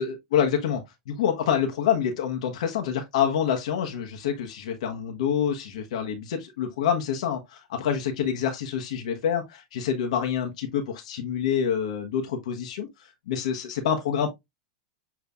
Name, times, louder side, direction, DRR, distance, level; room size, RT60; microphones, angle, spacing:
voice 1, 0.0-12.9 13.3-14.3, left 8 dB, 75° left, 1.1 m, -27 dB
6.9 x 3.1 x 2.3 m
hypercardioid pair, 125°, 4 cm